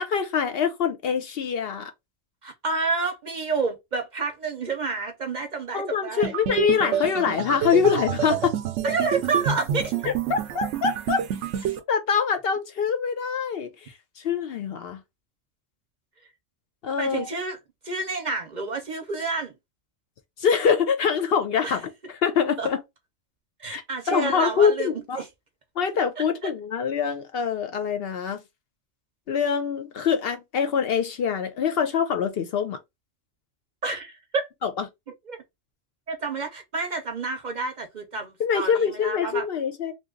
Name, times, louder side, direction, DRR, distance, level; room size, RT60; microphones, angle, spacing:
voice 1, 0.0-1.9 5.7-8.5 10.0-11.2 11.9-15.0 16.8-17.3 20.4-22.8 23.7-23.8 24.1-25.2 25.8-28.4 29.3-32.8 34.6-34.8 38.4-39.9, left 7 dB, 65° left, 0.7 m, -24 dB
voice 2, 2.4-6.3 8.8-9.9 17.0-17.6 17.8-19.5 21.6-21.8 22.6-22.7 23.6-25.3 26.2-26.5 33.8-34.5 35.3-35.4 36.1-39.5, right 4 dB, 50° right, 0.7 m, -29 dB
sound 1, 6.2-11.8, right 9 dB, 85° right, 0.9 m, -28 dB
2.8 x 2.3 x 3.7 m
omnidirectional pair, 1.2 m